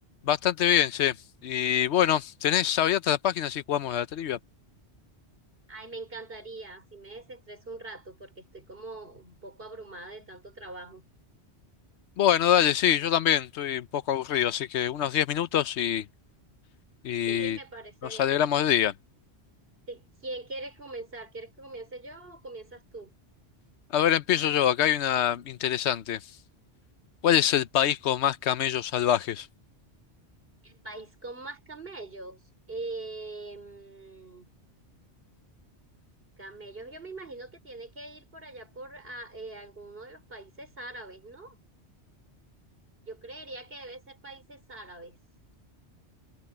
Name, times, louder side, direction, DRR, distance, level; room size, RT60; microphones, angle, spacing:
voice 1, 0.2-1.2 1.4-4.4 12.2-16.0 17.0-17.6 18.1-18.9 23.9-26.2 27.2-29.5, left 10 dB, 75° left, 1.0 m, -25 dB
voice 2, 5.7-11.0 17.3-18.4 19.9-23.1 30.6-32.4 32.7-34.5 36.4-41.5 43.0-45.2, right 2 dB, 55° right, 4.8 m, -42 dB
omnidirectional pair, 1.1 m